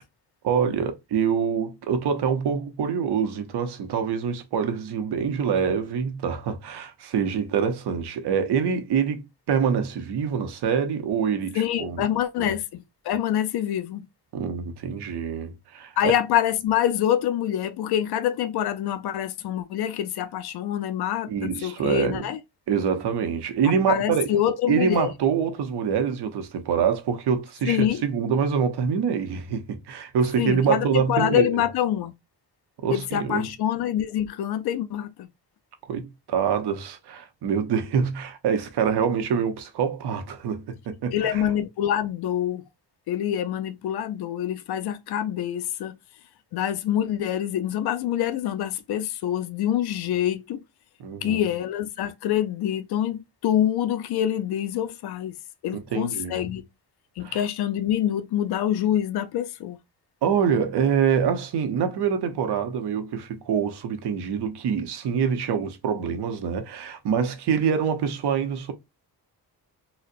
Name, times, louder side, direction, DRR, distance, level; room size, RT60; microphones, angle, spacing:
voice 1, 0.4-12.0 12.4-12.5 14.3-16.1 21.3-22.3 22.7-24.3 24.7-31.6 32.8-33.5 35.9-41.4 51.0-51.4 55.7-56.5 57.2-57.4 60.2-68.7, right 7 dB, 80° right, 0.8 m, -25 dB
voice 2, 11.5-14.0 16.0-22.4 23.9-25.1 27.7-28.0 30.4-32.1 32.9-35.3 41.1-42.6 43.1-45.9 46.5-50.6 51.2-55.3 55.6-56.6 57.2-59.8, left 10 dB, 75° left, 0.5 m, -26 dB
4.1 x 2.1 x 2.5 m
wide cardioid pair, 125°, 39 cm